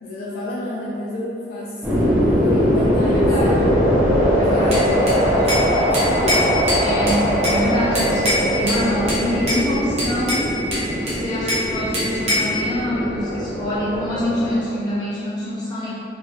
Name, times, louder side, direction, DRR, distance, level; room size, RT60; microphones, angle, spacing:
voice 1, 0.0-3.7 4.5-6.7, left 1 dB, 55° left, -6 dB, 0.3 m, -30 dB
sound 1, 1.8-14.6, equal, 10° right, 0.5 m, -21 dB
Thunder, 2.6-5.7 6.2-11.5, equal, 75° left, 1.0 m, -31 dB
voice 2, 3.1-3.8 4.3-4.7 5.1-5.4 6.8-10.4 10.9-15.9, equal, 25° left, -10 dB, 0.7 m, -25 dB
Bell / Glass, 4.7-5.7 5.9-7.6 7.9-8.8 9.1-9.6 10.0-11.7 11.9-12.6, left 1 dB, 35° right, 0.8 m, -23 dB
3.0 x 2.7 x 2.4 m, 2.8 s
head